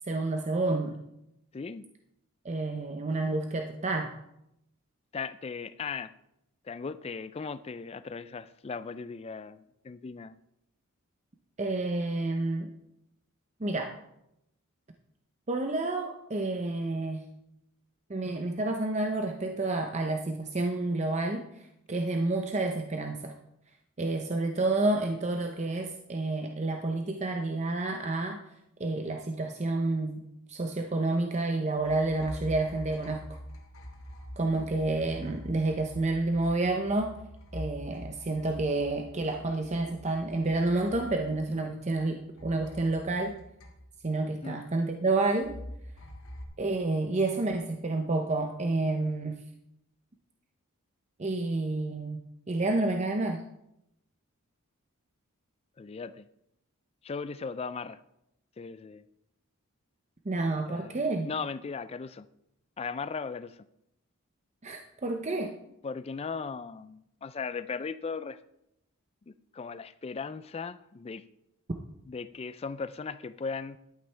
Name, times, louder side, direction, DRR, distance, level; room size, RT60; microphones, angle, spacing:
voice 1, 0.1-1.0 2.4-4.1 11.6-12.7 13.6-13.9 15.5-17.2 18.1-23.3 24.0-28.4 28.8-30.2 30.5-33.2 34.4-37.2 37.5-43.4 44.0-45.6 46.6-49.4 51.2-53.4 60.3-61.3 64.6-65.6, right 2 dB, 30° right, 4 dB, 0.6 m, -29 dB
voice 2, 1.5-1.9 5.1-6.1 6.6-10.4 44.4-44.6 55.8-56.2 57.0-58.0 58.6-59.0 60.7-61.0 61.2-62.3 62.8-63.6 65.8-68.4 69.3-71.2 72.0-73.8, left 5 dB, 25° left, 15 dB, 0.3 m, -37 dB
sound 1, 31.8-42.1 42.4-44.2 45.4-46.4, equal, 70° left, 1.7 m, -45 dB
11.5 x 8.9 x 3.3 m, 0.82 s
head